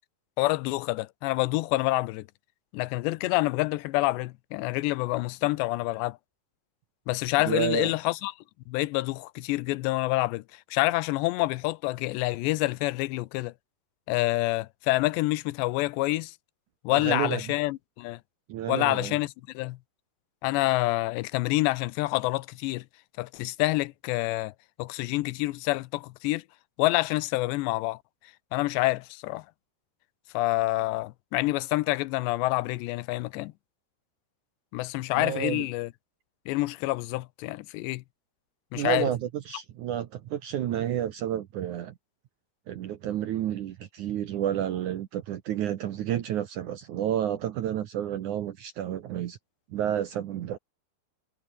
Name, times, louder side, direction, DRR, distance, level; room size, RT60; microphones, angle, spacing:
voice 1, 0.4-2.3 2.7-6.2 7.1-8.3 8.7-13.5 14.1-16.3 16.8-18.2 18.7-19.8 20.4-22.9 23.2-24.5 24.8-26.4 26.8-28.0 28.5-29.5 30.3-33.5 34.7-35.9 36.5-38.0 38.7-39.1, left 20 dB, 90° left, 3.0 m, -27 dB
voice 2, 7.5-7.9 16.9-17.4 18.5-19.2 35.2-35.7 38.7-41.9 42.7-49.4 49.7-50.6, right 11 dB, 70° right, 1.9 m, -30 dB
omnidirectional pair, 4.9 m